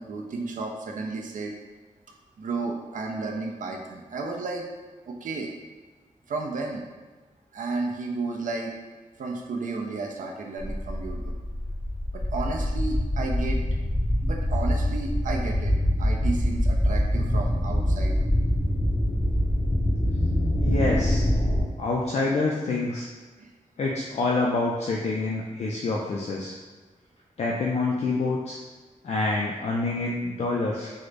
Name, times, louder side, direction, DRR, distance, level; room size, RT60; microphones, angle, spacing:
voice 1, 0.0-1.5 2.4-4.7 5.1-5.5 6.3-6.8 7.5-8.7 9.2-11.3 12.1-13.6 14.2-15.7 16.0-18.1 23.4-23.5, right 3 dB, 75° right, 0 dB, 0.5 m, -32 dB
sound 1, 10.6-21.6, equal, 35° left, 1.2 m, -24 dB
voice 2, 20.6-21.3 21.8-23.1 23.8-26.5 27.4-28.6 29.0-30.9, left 3 dB, 55° left, -3 dB, 0.4 m, -27 dB
3.7 x 2.0 x 3.3 m, 1.3 s
wide cardioid pair, 145°, 13 cm